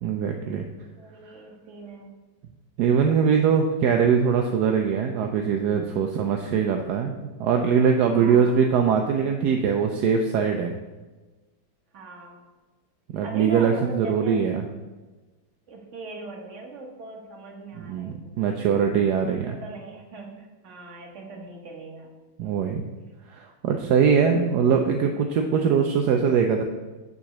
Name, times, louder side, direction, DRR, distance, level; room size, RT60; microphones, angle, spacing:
voice 1, 0.0-0.6 2.8-7.1 7.4-10.7 13.1-14.6 17.8-19.5 22.4-22.8 23.3-26.6, right 6 dB, 70° right, 4 dB, 1.0 m, -22 dB
voice 2, 1.0-2.1 3.5-3.6 6.8-7.1 8.1-8.6 11.9-12.4 13.2-14.9 15.7-18.7 19.3-22.1 22.4-22.6, right 3 dB, 40° right, 1 dB, 1.4 m, -40 dB
7.3 x 4.1 x 6.4 m, 1.2 s
omnidirectional pair, 2.1 m